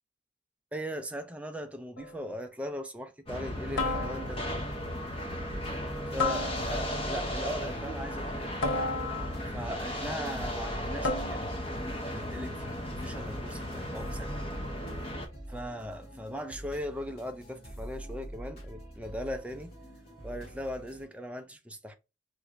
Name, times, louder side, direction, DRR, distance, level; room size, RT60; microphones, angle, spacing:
voice 1, 0.7-4.7 6.1-8.5 9.5-11.5 12.1-14.5 15.5-19.7 20.2-22.0, equal, 5° right, 0.3 m, -39 dB
sound 1, 2.0-2.3 3.8-4.6 6.2-7.0 8.6-9.6 11.0-11.6, left 3 dB, 85° left, 0.6 m, -33 dB
sound 2, 3.3-15.3, equal, 30° left, 0.7 m, -36 dB
sound 3, 3.8-21.1, right 1 dB, 50° left, 1.6 m, -45 dB
3.0 x 2.5 x 2.9 m
head